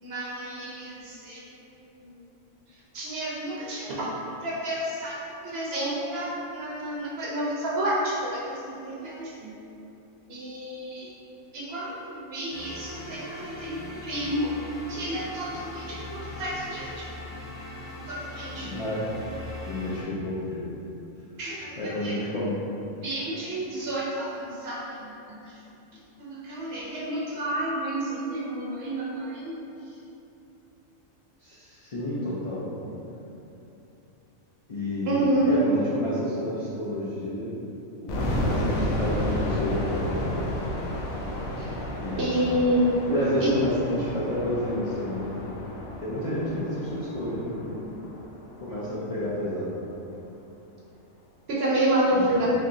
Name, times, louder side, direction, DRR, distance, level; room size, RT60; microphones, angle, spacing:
voice 1, 0.0-1.4 2.9-4.1 4.4-5.2 5.4-9.6 10.3-11.1 11.5-14.5 14.9-17.1 18.1-18.7 21.4-22.2 23.0-25.4 26.2-29.6 35.1-35.5 42.2-42.8 43.4-43.5 51.5-52.5, right 1 dB, 55° right, -6 dB, 0.8 m, -30 dB
sound 1, 12.5-20.0, left 1 dB, 15° left, 0.7 m, -40 dB
voice 2, 18.6-19.1 19.7-20.6 21.8-22.6 31.4-32.7 34.7-37.5 38.0-40.5 41.9-42.6 43.0-45.6 46.0-47.9 48.6-49.7 52.1-52.3, left 1 dB, 65° left, -9 dB, 0.3 m, -30 dB
sound 2, 38.1-49.0, left 1 dB, 90° left, 1.0 m, -32 dB
4.1 x 2.9 x 2.6 m, 2.9 s
omnidirectional pair, 1.4 m